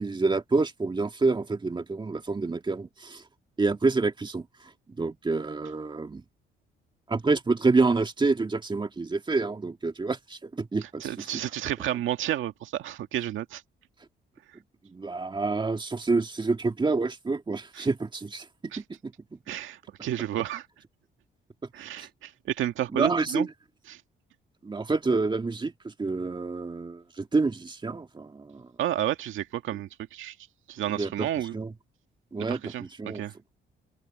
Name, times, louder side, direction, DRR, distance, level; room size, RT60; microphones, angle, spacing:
voice 1, 0.0-3.2 3.6-4.7 5.0-6.2 7.1-11.3 14.9-18.5 18.8-19.4 22.0-22.1 22.9-23.5 24.6-28.7 30.9-31.7 32.3-33.2, right 3 dB, 25° right, 2.1 m, -28 dB
voice 2, 11.0-13.6 17.8-17.9 18.7-18.8 19.5-20.7 21.7-23.5 23.9-24.0 28.8-30.4 30.7-31.6 32.5-33.3, right 12 dB, 80° right, 1.9 m, -31 dB
open air
cardioid pair, 90°, 20 cm